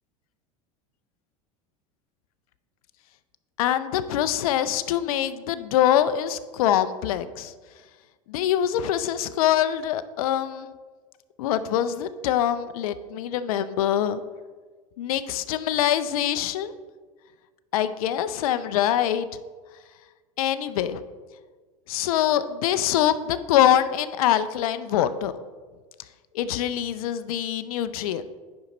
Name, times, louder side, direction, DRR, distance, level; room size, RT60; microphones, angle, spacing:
voice 1, 3.6-7.5 8.3-10.7 11.4-14.2 15.0-16.7 17.7-19.3 20.4-21.0 21.9-25.3 26.3-28.3, left 11 dB, 80° left, 13 dB, 0.5 m, -24 dB
9.5 x 5.4 x 3.9 m, 1.4 s
hypercardioid pair, 95°, 18 cm